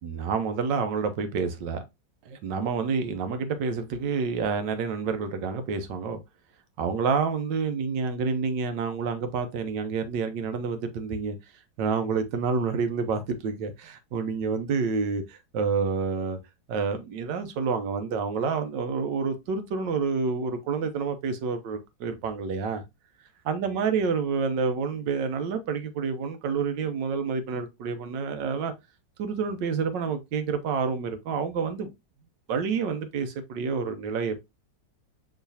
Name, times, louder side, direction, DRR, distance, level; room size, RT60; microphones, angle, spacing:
voice 1, 0.0-1.8 2.3-6.2 6.8-11.4 11.8-16.4 16.7-22.8 23.5-28.7 29.2-31.9 32.5-34.4, right 5 dB, 85° right, 1.5 m, -28 dB
5.9 x 3.2 x 2.7 m
omnidirectional pair, 1.9 m